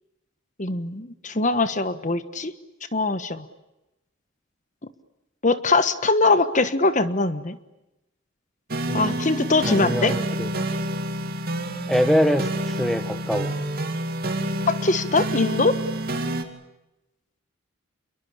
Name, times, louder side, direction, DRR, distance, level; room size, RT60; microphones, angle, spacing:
voice 1, 0.6-2.5 2.9-3.4 5.4-7.6 8.9-10.1 14.7-15.8, left 3 dB, 35° left, 12 dB, 1.3 m, -22 dB
sound 1, 8.7-16.4, right 1 dB, 45° right, 2.9 m, -28 dB
voice 2, 8.9-9.2 9.6-10.5 11.9-13.5, equal, ahead, 10 dB, 1.3 m, -24 dB
28.5 x 22.5 x 8.7 m, 0.94 s
head